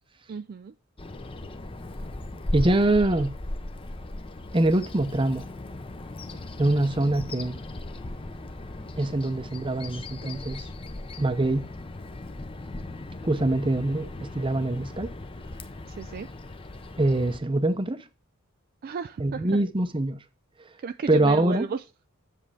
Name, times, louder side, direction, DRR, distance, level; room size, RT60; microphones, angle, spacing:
voice 1, 0.3-0.7 15.9-16.3 18.8-19.6 20.8-21.8, right 5 dB, 45° right, 0.3 m, -34 dB
Bird vocalization bird call bird song, 1.0-17.4, left 2 dB, 25° left, 0.7 m, -38 dB
voice 2, 2.5-3.3 4.5-5.5 6.6-7.6 9.0-10.6 11.2-11.7 13.2-15.1 17.0-18.0 19.2-20.2 21.1-21.7, right 2 dB, 25° right, 0.7 m, -24 dB
7.6 x 7.4 x 3.4 m
head